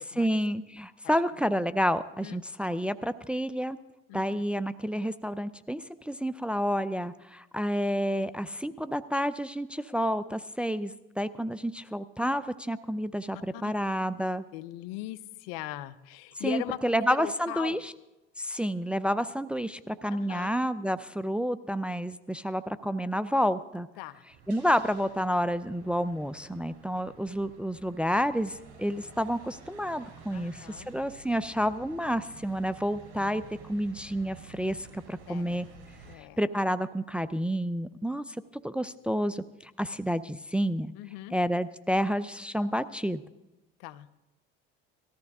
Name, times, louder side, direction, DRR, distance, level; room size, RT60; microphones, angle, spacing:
voice 1, 0.2-3.8 4.1-14.4 16.4-17.9 18.4-23.9 24.5-35.7 36.4-38.4 38.6-40.9 41.3-43.2, equal, 5° right, 13 dB, 0.5 m, -29 dB
voice 2, 14.5-17.8 20.2-20.5 24.0-24.2 30.3-30.9 35.3-35.6 36.1-36.4 41.0-41.4 43.8-44.1, left 15 dB, 85° left, 16 dB, 0.8 m, -39 dB
sound 1, 24.3-36.2, right 5 dB, 60° right, 5.2 m, -51 dB
18.5 x 14.0 x 3.6 m, 0.99 s
supercardioid pair, 85°, 29 cm